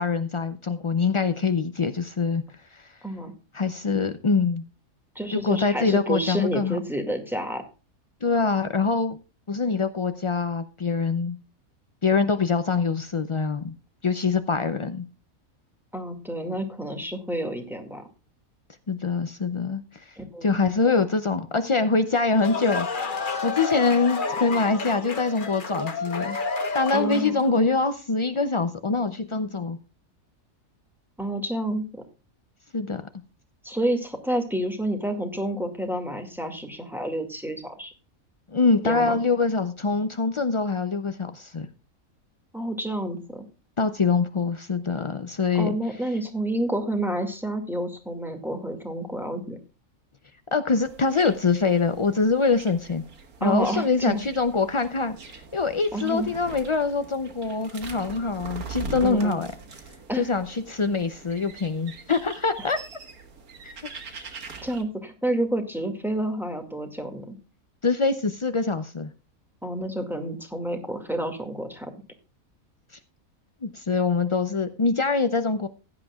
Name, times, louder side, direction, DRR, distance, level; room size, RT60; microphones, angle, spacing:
voice 1, 0.0-2.4 2.7-2.8 3.5-4.6 5.3-6.8 8.2-9.2 9.5-11.4 12.0-13.7 14.0-15.1 18.9-20.1 20.4-22.9 23.4-26.4 26.7-29.8 32.7-33.0 38.5-41.7 43.8-45.7 50.5-53.0 53.4-59.5 60.2-62.8 63.6-63.7 67.8-69.1 73.6-75.7, left 4 dB, 55° left, 9 dB, 0.3 m, -24 dB
voice 2, 5.2-7.6 15.9-18.0 20.2-20.5 26.9-27.4 31.2-32.0 33.6-37.9 38.8-39.1 42.5-43.5 45.5-49.6 53.4-54.2 55.9-56.3 59.0-59.4 60.1-60.3 64.6-67.4 69.6-71.9, right 1 dB, ahead, 3 dB, 2.0 m, -29 dB
sound 1, 22.1-27.5, left 4 dB, 40° left, 1.2 m, -30 dB
sound 2, 50.8-64.8, right 4 dB, 90° right, 2.0 m, -42 dB
16.0 x 10.5 x 2.4 m, 0.32 s
omnidirectional pair, 1.5 m